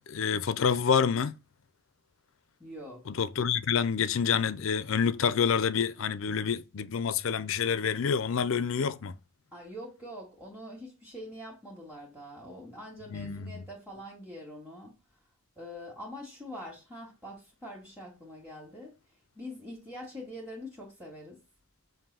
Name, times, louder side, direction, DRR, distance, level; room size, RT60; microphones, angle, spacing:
voice 1, 0.0-1.3 3.2-9.2 13.1-13.6, left 6 dB, 70° left, 0.5 m, -28 dB
voice 2, 2.6-3.0 9.5-14.9 15.6-18.9 19.4-21.4, equal, 5° right, 1.9 m, -44 dB
7.6 x 2.7 x 5.5 m
head